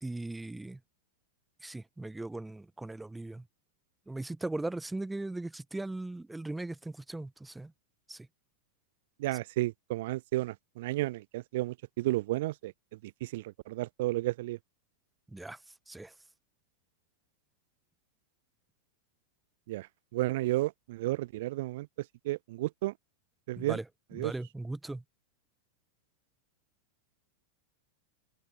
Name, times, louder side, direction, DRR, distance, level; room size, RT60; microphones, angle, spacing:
voice 1, 0.0-0.8 1.6-3.5 4.1-7.7 8.1-8.3 15.3-15.6 15.9-16.1 23.6-23.8 24.2-25.0, right 2 dB, 5° right, 1.3 m, -38 dB
voice 2, 9.2-14.6 19.7-22.9 23.5-23.8 24.1-24.3, right 18 dB, 55° right, 0.3 m, -33 dB
open air
figure-of-eight pair, 90°, 0 cm